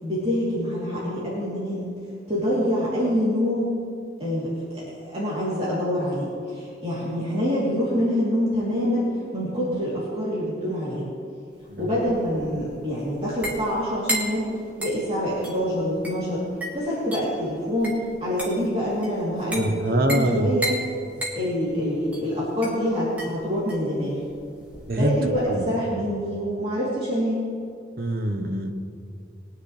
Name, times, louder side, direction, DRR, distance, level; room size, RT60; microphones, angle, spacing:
voice 1, 0.0-1.9 2.3-3.7 4.2-11.0 11.8-14.5 14.8-16.4 16.7-20.7 21.3-24.2 25.0-27.4, equal, 30° right, -9 dB, 3.1 m, -26 dB
sound 1, 11.6-25.6, right 1 dB, 10° right, 2.0 m, -35 dB
voice 2, 19.6-20.5 24.9-25.2 25.5-25.8 28.0-28.7, right 1 dB, 50° right, 5 dB, 1.0 m, -24 dB
21.5 x 9.6 x 3.3 m, 2.4 s
head